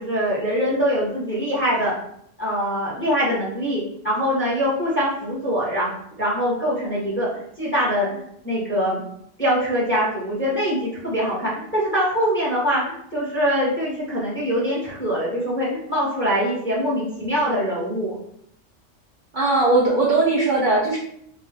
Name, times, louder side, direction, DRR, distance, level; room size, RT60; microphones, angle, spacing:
voice 1, 0.0-1.9 2.4-9.0 9.4-18.1, equal, 10° left, -6 dB, 0.7 m, -23 dB
voice 2, 19.3-21.0, right 2 dB, 50° right, -5 dB, 0.6 m, -19 dB
2.4 x 2.2 x 3.9 m, 0.71 s
omnidirectional pair, 1.3 m